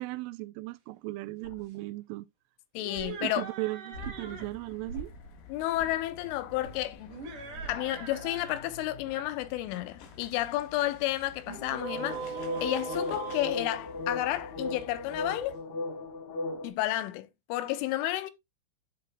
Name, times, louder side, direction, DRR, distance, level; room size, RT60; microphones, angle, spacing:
voice 1, 0.0-2.3 3.2-5.1, right 21 dB, 85° right, 3.1 m, -37 dB
sound 1, 1.4-1.6 3.0-3.1 3.9-4.4 4.9-5.3 5.7-5.9 6.6-6.8 7.5-7.9 11.5-16.7, left 2 dB, 45° left, 2.6 m, -37 dB
voice 2, 2.7-3.4 5.5-7.2 7.7-12.3 12.6-15.6 16.6-18.3, left 15 dB, 85° left, 3.1 m, -31 dB
sound 2, 2.8-4.5 7.1-8.6 8.9-9.3 11.5-14.4, right 6 dB, 50° right, 3.2 m, -41 dB
sound 3, 3.9-15.6, left 5 dB, 65° left, 3.4 m, -51 dB
12.5 x 5.0 x 2.2 m
omnidirectional pair, 5.7 m